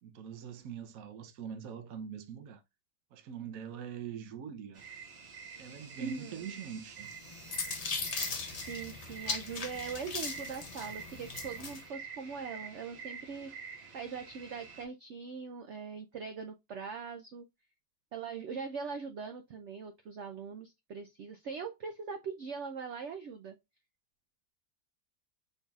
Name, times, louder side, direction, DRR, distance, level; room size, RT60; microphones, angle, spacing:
voice 1, 0.0-2.6 3.1-4.8 5.6-7.1, right 8 dB, 65° right, 1.0 m, -43 dB
sound 1, 4.7-14.8, right 6 dB, 40° right, 1.2 m, -47 dB
voice 2, 6.0-6.5 8.6-13.5 13.9-17.4 18.1-23.6, right 5 dB, 85° right, 0.6 m, -41 dB
sound 2, 7.1-11.8, left 4 dB, 65° left, 0.3 m, -38 dB
5.5 x 3.9 x 2.3 m
omnidirectional pair, 1.8 m